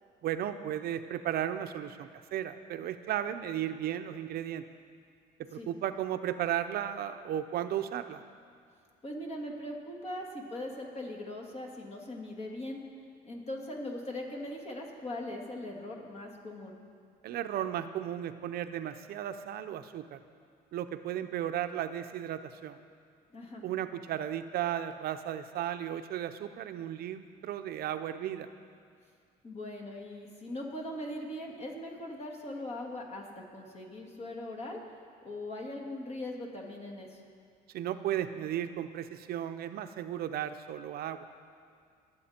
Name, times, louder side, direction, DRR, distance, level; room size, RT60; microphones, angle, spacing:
voice 1, 0.2-4.6 5.4-8.2 17.2-20.2 20.7-22.8 23.6-28.5 37.7-41.3, right 11 dB, 65° right, 9 dB, 0.6 m, -35 dB
voice 2, 9.0-12.8 13.2-16.8 23.3-23.6 29.4-34.8 35.2-37.2, left 1 dB, 40° left, 1 dB, 2.3 m, -40 dB
22.5 x 8.2 x 4.4 m, 2.2 s
cardioid pair, 110°, 17 cm